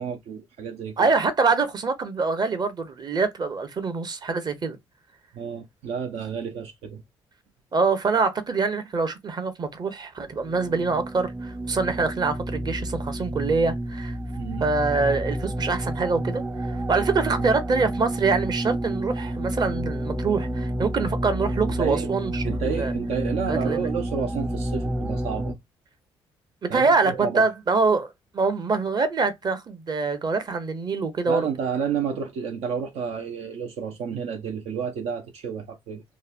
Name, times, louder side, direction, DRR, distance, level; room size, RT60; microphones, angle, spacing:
voice 1, 0.0-1.1 5.3-7.0 11.9-12.1 14.4-14.7 17.3-17.4 21.7-22.1 22.4-25.6 26.7-27.5 31.3-36.0, right 6 dB, 75° right, 0.6 m, -30 dB
voice 2, 1.0-4.8 7.7-14.1 14.6-16.4 16.7-22.9 23.5-23.8 26.6-31.4, right 4 dB, 40° right, 0.9 m, -25 dB
sound 1, 10.3-25.5, right 1 dB, 15° right, 0.4 m, -30 dB
3.0 x 2.2 x 2.3 m
supercardioid pair, 60°, 11 cm